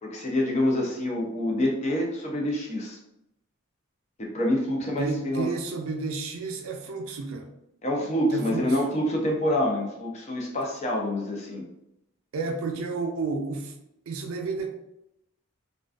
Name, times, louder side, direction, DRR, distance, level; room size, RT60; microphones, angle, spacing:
voice 1, 0.0-3.0 4.2-5.5 7.8-11.6, left 1 dB, 30° left, 0 dB, 0.4 m, -26 dB
voice 2, 5.0-7.5 8.3-8.8 12.3-13.7 14.1-14.7, right 4 dB, 70° right, 3 dB, 0.4 m, -31 dB
2.4 x 2.2 x 2.3 m, 0.84 s
head